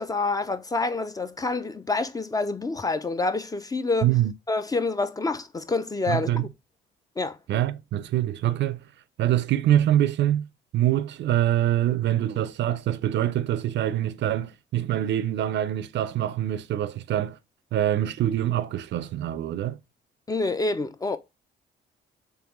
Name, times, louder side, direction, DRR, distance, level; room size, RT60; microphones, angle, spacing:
voice 1, 0.0-4.1 4.5-6.5 7.2-7.4 20.3-21.2, left 3 dB, 20° left, 0.4 m, -27 dB
voice 2, 4.0-4.3 6.1-6.4 7.5-8.8 9.2-10.5 10.7-17.4 17.7-19.8, right 12 dB, 65° right, 0.4 m, -24 dB
3.6 x 3.3 x 3.0 m
cardioid pair, 90°, 20 cm